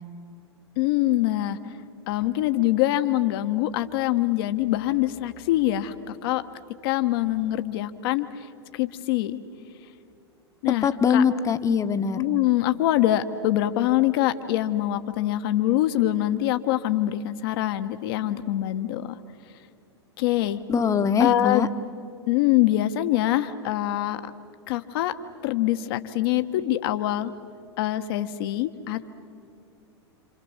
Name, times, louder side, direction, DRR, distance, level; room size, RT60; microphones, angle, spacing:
voice 1, 0.8-1.6 2.1-6.4 6.8-8.3 8.7-9.4 10.6-11.2 12.2-19.1 20.2-20.6 21.2-21.7 22.3-24.2 24.7-25.1 25.4-27.3 27.8-29.1, left 14 dB, 55° left, 9 dB, 1.3 m, -24 dB
voice 2, 10.8-12.2 20.7-21.7, left 6 dB, 20° left, 9 dB, 1.2 m, -22 dB
28.0 x 27.0 x 7.2 m, 2.4 s
figure-of-eight pair, 95°, 14 cm